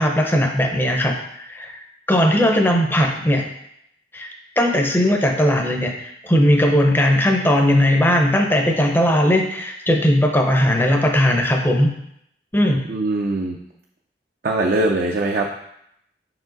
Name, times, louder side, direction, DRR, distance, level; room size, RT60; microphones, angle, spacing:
voice 1, 0.0-1.7 2.1-3.4 4.1-4.3 4.6-11.9 12.5-12.8, equal, 10° left, 2 dB, 0.6 m, -18 dB
voice 2, 12.9-13.6 14.4-15.5, right 2 dB, 55° right, 1 dB, 0.5 m, -21 dB
5.5 x 4.8 x 3.9 m, 0.75 s
head